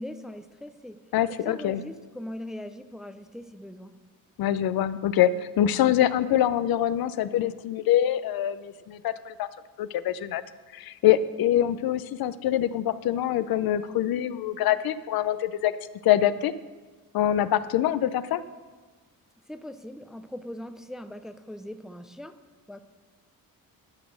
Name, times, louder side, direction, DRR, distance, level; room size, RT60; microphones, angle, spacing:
voice 1, 0.0-1.0 1.3-3.9 19.5-22.3 22.7-22.8, left 1 dB, ahead, 9 dB, 0.4 m, -40 dB
voice 2, 1.1-1.8 4.4-5.3 5.6-9.5 9.8-10.4 10.7-15.7 16.0-16.5 17.1-18.4, left 12 dB, 75° left, 14 dB, 0.6 m, -24 dB
12.5 x 6.1 x 6.2 m, 1.4 s
cardioid pair, 115°, 36 cm